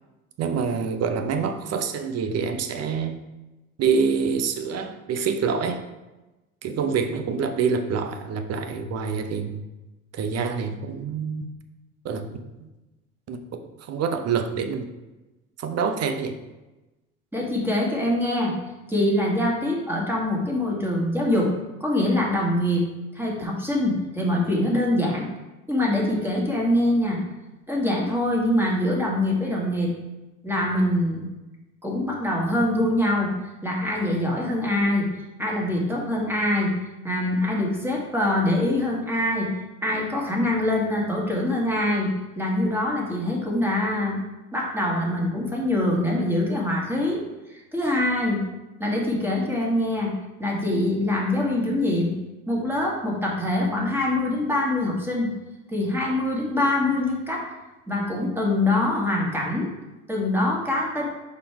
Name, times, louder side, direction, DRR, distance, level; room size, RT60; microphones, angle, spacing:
voice 1, 0.4-3.2 3.8-5.8 6.6-9.6 10.1-11.5 12.0-12.3 12.6-12.7 13.3-13.4 13.9-14.9 15.6-16.4, right 6 dB, 40° right, 7 dB, 0.8 m, -26 dB
voice 2, 17.3-18.5 18.9-21.5 21.8-22.8 23.2-25.3 25.7-27.2 27.7-29.9 30.4-31.2 31.8-33.3 33.6-35.1 35.4-36.7 37.0-39.5 39.8-42.1 42.4-44.2 44.5-47.2 47.5-48.4 48.8-50.1 50.4-52.1 52.5-55.3 55.7-57.4 57.9-59.7 60.1-61.0, left 1 dB, 5° right, -3 dB, 1.8 m, -24 dB
5.4 x 4.3 x 4.6 m, 1.1 s
hypercardioid pair, 70°, 42 cm